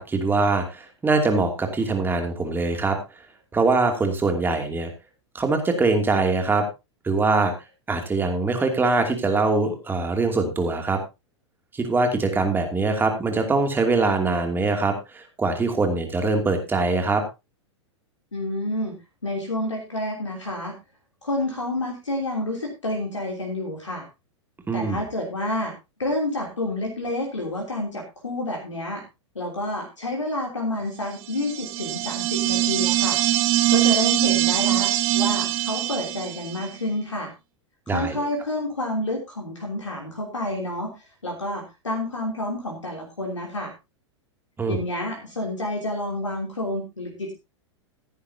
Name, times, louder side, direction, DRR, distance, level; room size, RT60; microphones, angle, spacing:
voice 1, 0.0-3.0 3.5-4.9 5.3-6.7 7.0-7.5 7.9-11.0 11.7-17.2 24.7-25.0 37.9-38.2 44.6-44.8, right 3 dB, 15° right, 5 dB, 2.7 m, -23 dB
voice 2, 18.3-19.0 19.2-20.7 21.2-24.0 24.7-25.7 26.0-29.0 29.3-33.2 33.7-37.3 37.9-40.9 41.2-43.7 44.7-47.3, left 1 dB, 85° left, 1 dB, 3.2 m, -29 dB
sound 1, 31.3-36.7, right 15 dB, 40° right, 1.1 m, -22 dB
15.5 x 10.5 x 2.8 m, 0.25 s
figure-of-eight pair, 95°, 15 cm